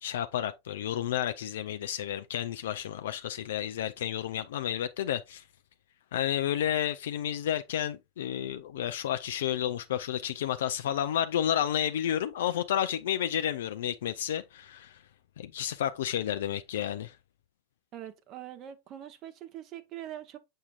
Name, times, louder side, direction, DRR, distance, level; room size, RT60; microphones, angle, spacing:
voice 1, 0.0-5.4 6.1-15.0 15.4-17.2, left 10 dB, 60° left, 0.4 m, -31 dB
voice 2, 17.9-20.4, right 11 dB, 35° right, 0.9 m, -43 dB
7.0 x 6.5 x 2.4 m
figure-of-eight pair, 90°, 0 cm